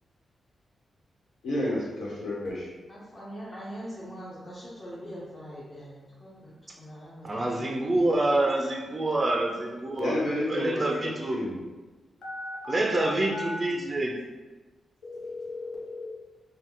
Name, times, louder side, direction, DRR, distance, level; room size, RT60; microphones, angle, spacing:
voice 1, 1.4-2.7 10.0-11.6, left 1 dB, 80° left, 1.3 m, -30 dB
voice 2, 2.9-8.0, equal, 20° left, 0.7 m, -42 dB
voice 3, 7.2-10.2 10.5-11.4 12.7-14.2, right 2 dB, 25° right, 0.4 m, -27 dB
voice 4, 12.2-13.6 15.0-16.0, left 2 dB, 60° left, 1.0 m, -37 dB
4.0 x 2.3 x 3.8 m
wide cardioid pair, 150°, 0 cm